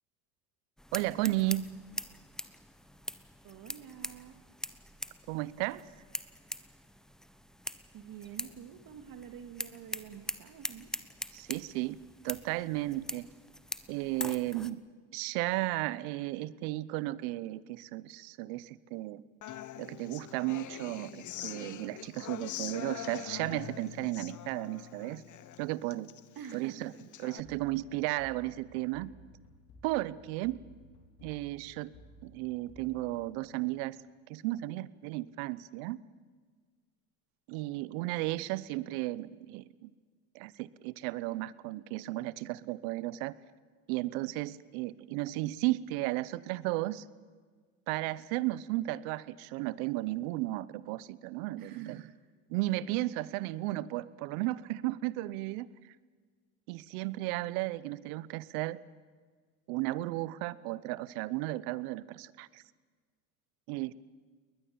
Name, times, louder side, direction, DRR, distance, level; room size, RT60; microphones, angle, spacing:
sound 1, 0.8-14.7, equal, ahead, 1.1 m, -43 dB
voice 1, 0.9-1.7 5.3-5.9 11.3-12.0 12.2-13.3 13.9-14.8 15.1-19.2 19.8-25.2 25.6-26.1 26.5-26.9 27.2-29.1 29.8-30.6 31.2-31.9 32.2-34.0 34.3-36.0 37.5-39.9 40.3-43.3 43.9-47.0 47.9-52.0 52.5-55.7 56.7-58.8 59.7-62.6 63.7-64.0, right 18 dB, 75° right, 20 dB, 1.0 m, -34 dB
voice 2, 3.4-4.4 7.9-10.9 26.4-26.9 27.5-27.6 51.6-52.1, right 8 dB, 50° right, 9 dB, 2.2 m, -48 dB
Human voice / Acoustic guitar, 19.4-27.4, left 11 dB, 40° left, 1.2 m, -44 dB
sound 2, 27.4-34.1, equal, 65° left, 4.5 m, -57 dB
21.5 x 20.0 x 8.8 m, 1.5 s
supercardioid pair, 95°, 44 cm